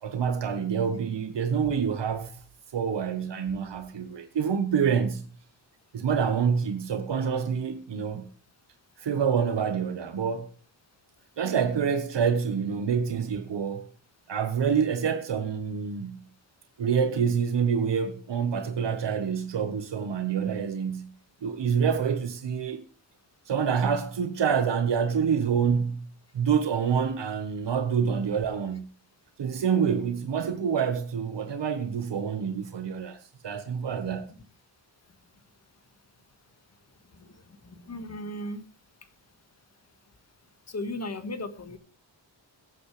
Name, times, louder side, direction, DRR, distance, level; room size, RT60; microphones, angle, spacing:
voice 1, 0.0-2.4 2.7-5.2 5.9-8.3 9.0-10.5 11.4-13.9 14.3-16.3 16.8-21.1 21.4-22.8 23.4-26.0 26.3-28.9 29.4-34.3, right 7 dB, 65° right, 1.3 m, -27 dB
voice 2, 37.7-38.6 40.7-41.8, left 1 dB, 35° left, 1.7 m, -36 dB
23.0 x 8.5 x 3.3 m
wide cardioid pair, 135°, 46 cm